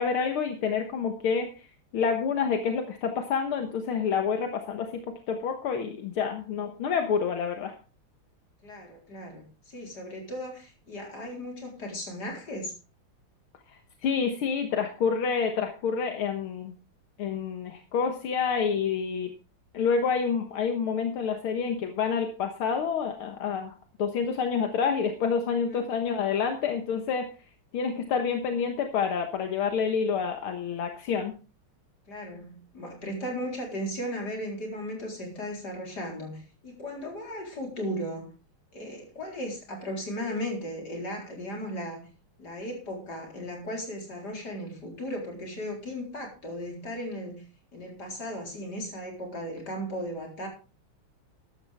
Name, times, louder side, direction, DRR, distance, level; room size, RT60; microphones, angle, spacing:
voice 1, 0.0-1.5 1.9-7.7 13.7-16.7 17.2-19.3 19.7-27.3 27.7-31.3, left 6 dB, 80° left, 5 dB, 2.1 m, -28 dB
voice 2, 8.6-12.7 25.7-25.9 32.1-38.3 38.7-42.1 42.4-47.4 47.7-50.5, equal, 45° left, 0 dB, 4.6 m, -36 dB
14.0 x 12.0 x 3.5 m, 0.34 s
omnidirectional pair, 2.4 m